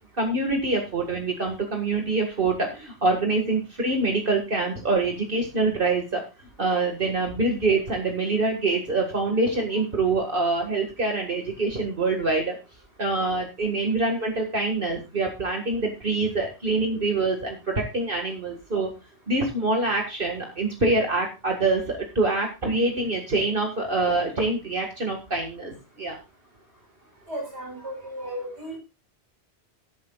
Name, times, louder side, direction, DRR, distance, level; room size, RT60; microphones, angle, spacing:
voice 1, 0.2-6.2 6.6-12.6 13.0-18.9 19.3-26.2, right 3 dB, 55° right, 2 dB, 2.0 m, -25 dB
voice 2, 27.3-28.8, equal, 75° right, 2 dB, 4.7 m, -35 dB
18.0 x 9.5 x 2.3 m, 0.28 s
omnidirectional pair, 1.1 m